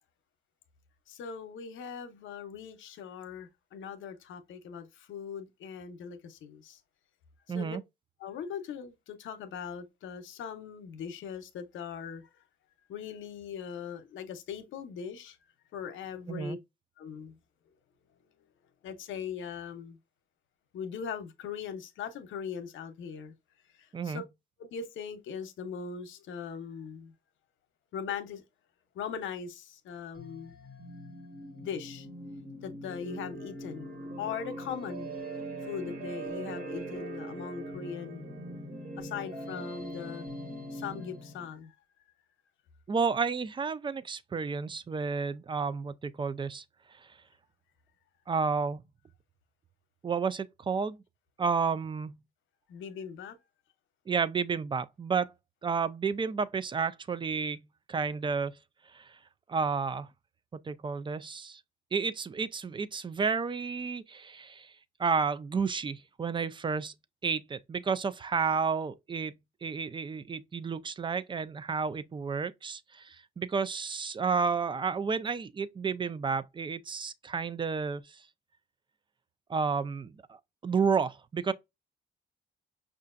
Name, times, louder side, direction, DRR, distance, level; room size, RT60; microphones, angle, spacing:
voice 1, 1.1-6.8 7.5-7.8 8.2-12.2 12.9-15.4 15.7-16.6 17.0-17.3 18.8-20.0 20.7-23.3 23.8-24.2 24.6-27.1 27.9-28.4 28.9-30.5 31.6-32.1 32.6-33.9 34.2-35.1 35.6-38.3 39.0-40.3 40.7-41.7 52.7-53.4, left 7 dB, 75° left, 0.7 m, -40 dB
voice 2, 7.5-7.8 16.3-16.6 23.9-24.2 42.9-46.6 48.3-48.8 50.0-51.0 51.4-52.2 54.1-55.3 55.6-57.6 57.9-58.5 58.9-59.1 59.5-60.1 60.5-61.6 61.9-64.7 65.0-66.9 67.2-69.3 69.6-78.2 79.5-80.4 80.6-81.5, right 5 dB, 25° right, 0.4 m, -31 dB
sound 1, 30.2-41.5, right 1 dB, 45° right, 1.4 m, -41 dB
5.5 x 2.4 x 2.5 m
cardioid pair, 90°, 20 cm